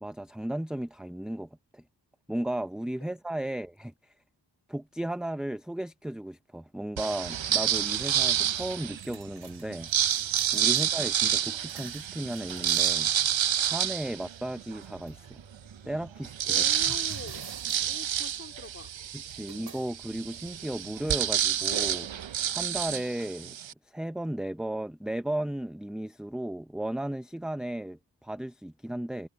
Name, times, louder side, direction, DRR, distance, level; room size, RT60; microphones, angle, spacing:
voice 1, 0.0-1.8 2.3-4.1 4.7-9.9 10.5-13.1 13.6-15.4 15.8-17.0 19.3-22.1 22.5-23.6 23.9-29.3, right 1 dB, ahead, 0.6 m, -35 dB
sound 1, 7.0-21.8, right 4 dB, 65° right, 7.6 m, -52 dB
sound 2, 7.0-9.1 9.7-14.9 15.4-15.5 15.7-23.7, right 10 dB, 85° right, 0.7 m, -29 dB
voice 2, 16.5-17.5 17.7-18.9, left 3 dB, 30° left, 2.7 m, -45 dB
wide cardioid pair, 85°, 45 cm